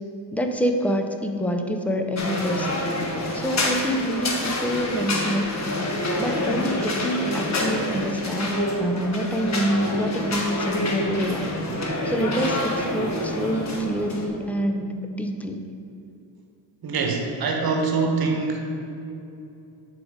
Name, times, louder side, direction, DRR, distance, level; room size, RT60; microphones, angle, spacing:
voice 1, 0.3-2.8 3.3-5.5 6.2-11.5 12.0-15.7, equal, 5° left, 5 dB, 0.5 m, -26 dB
sound 1, 2.2-14.3, left 1 dB, 35° left, 1.3 m, -27 dB
voice 2, 16.8-18.8, right 4 dB, 50° right, 2 dB, 1.2 m, -24 dB
8.2 x 5.0 x 4.9 m, 2.7 s
cardioid pair, 110°, 45 cm